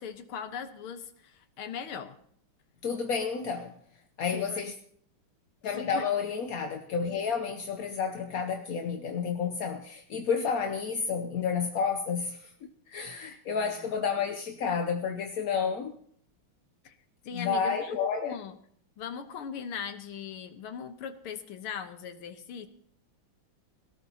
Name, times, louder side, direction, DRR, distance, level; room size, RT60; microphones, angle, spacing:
voice 1, 0.0-2.2 4.3-4.6 5.7-6.0 13.6-13.9 16.8-17.0 17.2-18.0 18.2-18.6 19.0-22.7, left 7 dB, 85° left, 2.0 m, -39 dB
voice 2, 2.8-3.7 4.2-4.7 5.6-12.5 12.9-16.0 17.3-18.4, left 6 dB, 60° left, 1.0 m, -30 dB
18.0 x 17.5 x 2.9 m
omnidirectional pair, 2.3 m